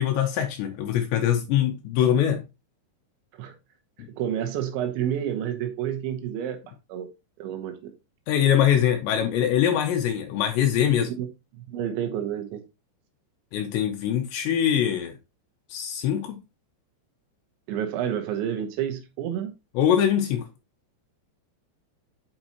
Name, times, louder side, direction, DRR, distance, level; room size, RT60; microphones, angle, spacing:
voice 1, 0.0-2.4 8.3-11.1 13.5-15.1 15.7-16.4 19.8-20.5, left 9 dB, 80° left, 2.9 m, -23 dB
voice 2, 4.2-6.6 6.9-7.1 7.4-7.9 11.1-11.3 11.6-12.6 17.7-19.5, right 10 dB, 85° right, 3.5 m, -29 dB
8.7 x 5.4 x 2.9 m
omnidirectional pair, 5.2 m